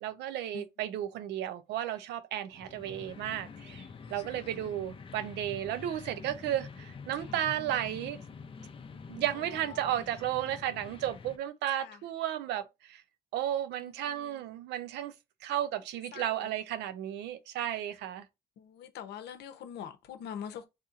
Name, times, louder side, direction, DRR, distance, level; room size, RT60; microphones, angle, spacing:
voice 1, 0.0-3.8 4.1-8.2 9.1-13.0 13.3-15.1 15.4-18.2, right 11 dB, 90° right, 0.5 m, -34 dB
sound 1, 2.5-11.4, left 5 dB, 30° left, 0.6 m, -47 dB
voice 2, 4.0-4.7 7.3-7.4 11.8-12.0 13.8-14.4 16.1-16.5 18.6-20.7, left 8 dB, 75° left, 0.7 m, -44 dB
4.1 x 2.8 x 2.4 m
cardioid pair, 105°, 17 cm